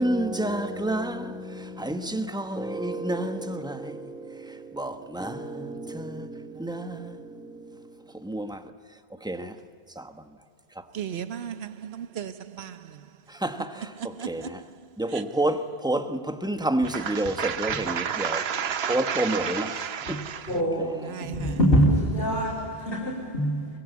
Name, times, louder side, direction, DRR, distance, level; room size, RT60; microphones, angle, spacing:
voice 1, 0.0-7.9 8.2-8.6 9.2-9.5 10.0-10.1 10.8-10.9 13.3-14.6 15.0-18.4 18.9-19.8 20.1-20.2 20.8-21.1, right 1 dB, 5° right, 1.1 m, -30 dB
voice 2, 10.9-12.8 14.2-14.5 15.1-15.2 16.9-20.5 21.0-21.6, right 8 dB, 75° right, 1.0 m, -32 dB
voice 3, 20.5-23.7, equal, 60° left, 3.7 m, -24 dB
22.5 x 21.0 x 8.2 m
omnidirectional pair, 1.1 m